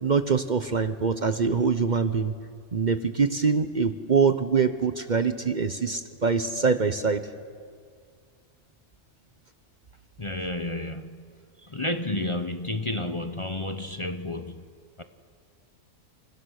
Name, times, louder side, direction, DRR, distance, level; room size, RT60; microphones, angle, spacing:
voice 1, 0.0-2.3 2.7-7.3, right 5 dB, 40° right, 10 dB, 1.0 m, -24 dB
voice 2, 10.2-11.2 11.7-14.6 15.0-15.1, left 1 dB, 25° left, 8 dB, 1.0 m, -31 dB
29.5 x 29.0 x 6.5 m, 2.1 s
omnidirectional pair, 1.3 m